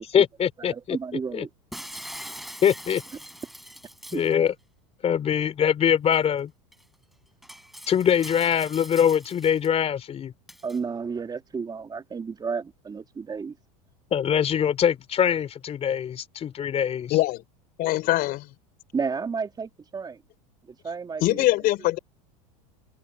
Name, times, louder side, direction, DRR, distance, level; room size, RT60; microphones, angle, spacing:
voice 1, 0.0-1.0 1.3-1.4 2.6-3.0 4.1-4.5 5.0-6.5 7.9-10.3 14.1-17.2, left 8 dB, 35° left, 3.6 m, -23 dB
voice 2, 0.6-1.5 4.1-4.2 10.6-13.6 18.9-20.2 20.7-22.0, right 5 dB, 20° right, 3.2 m, -32 dB
Shatter, 1.7-4.3 6.1-6.2 6.7-6.8 7.4-9.7 10.5-10.8, equal, ahead, 5.5 m, -42 dB
voice 3, 17.1-17.4 17.8-18.5 21.2-22.0, left 17 dB, 55° left, 4.3 m, -22 dB
supercardioid pair, 105°, 19 cm